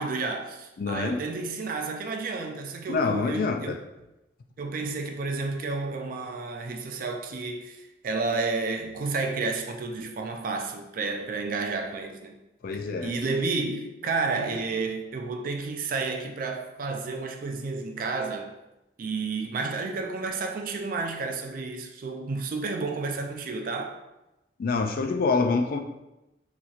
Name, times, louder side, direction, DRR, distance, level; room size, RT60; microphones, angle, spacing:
voice 1, 0.0-3.8 4.6-12.4 13.0-18.5 19.0-24.0, right 3 dB, 50° right, 0.4 m, -31 dB
voice 2, 0.8-1.2 2.9-3.8 12.6-13.1 24.6-25.8, left 4 dB, 50° left, 0.3 m, -26 dB
4.1 x 2.9 x 2.5 m
head